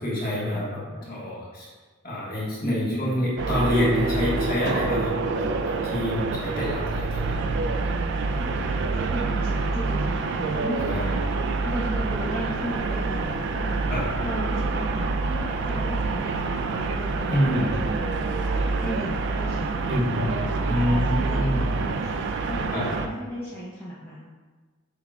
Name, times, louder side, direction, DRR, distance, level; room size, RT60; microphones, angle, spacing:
voice 1, 0.0-1.7 2.0-7.5 10.7-11.2 13.9-14.0 17.3-17.7 19.9-20.3 20.6-21.7 22.7-22.9, left 1 dB, 45° left, -7 dB, 1.3 m, -27 dB
voice 2, 0.5-1.1 2.6-3.1 8.3-11.2 11.6-13.8 14.2-20.2 20.6-24.2, equal, 10° left, -7 dB, 0.5 m, -35 dB
sound 1, 3.4-23.1, right 3 dB, 55° right, 0.3 m, -27 dB
5.6 x 3.5 x 2.3 m, 1.4 s
head